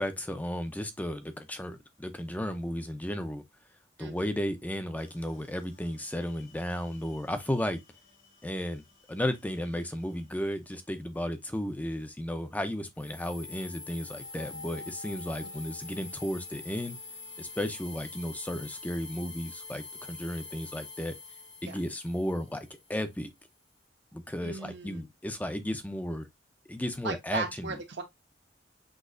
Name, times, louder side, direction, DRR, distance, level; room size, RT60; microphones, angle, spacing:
voice 1, 0.0-3.4 4.0-7.8 8.4-8.8 9.1-17.0 17.4-21.2 21.6-23.3 24.1-26.3 26.7-27.7, equal, 10° left, 0.5 m, -34 dB
voice 2, 4.0-4.3 21.6-21.7 24.4-25.0 27.0-28.0, right 4 dB, 65° right, 1.1 m, -36 dB
sound 1, 5.0-10.4 13.0-22.9, left 4 dB, 80° left, 2.0 m, -46 dB
6.2 x 2.9 x 2.5 m
head